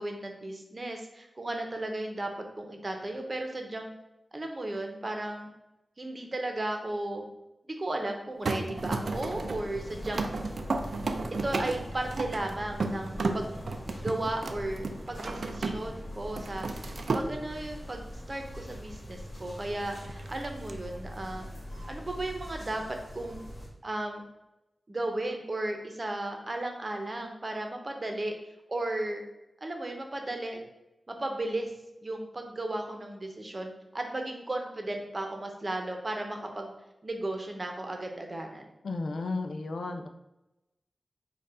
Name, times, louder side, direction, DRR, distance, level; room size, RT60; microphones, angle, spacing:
voice 1, 0.0-2.3 2.6-3.9 4.3-5.5 6.0-7.2 7.7-10.3 11.4-13.6 14.0-21.5 21.9-23.4 23.8-24.2 24.9-28.3 28.7-29.2 29.6-30.6 31.1-31.7 32.0-36.7 37.0-38.7, right 1 dB, 40° right, 3 dB, 0.8 m, -35 dB
sound 1, 8.4-16.0 16.3-17.3 19.9-20.7, right 3 dB, 75° right, 0.4 m, -33 dB
sound 2, 8.7-23.7, equal, 55° left, 1.6 m, -42 dB
voice 2, 38.8-40.1, left 3 dB, 85° left, 5 dB, 0.4 m, -33 dB
4.5 x 2.4 x 4.8 m, 0.95 s
wide cardioid pair, 80°, 0 cm